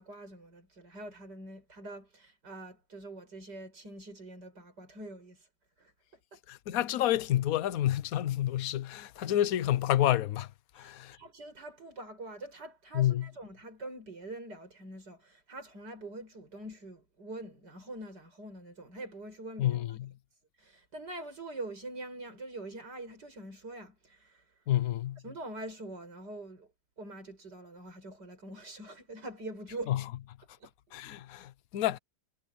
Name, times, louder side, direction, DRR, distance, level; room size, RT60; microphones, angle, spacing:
voice 1, 0.0-5.5 5.8-5.9 6.3-6.4 10.7-19.8 20.6-24.5 25.2-26.7 27.0-29.9 30.6-30.7, right 2 dB, 75° right, 7.5 m, -44 dB
voice 2, 6.5-10.5 10.8-11.2 12.9-13.3 19.6-19.9 24.7-25.2 29.9-30.0 30.9-32.0, left 12 dB, 60° left, 1.2 m, -29 dB
omnidirectional pair, 1.8 m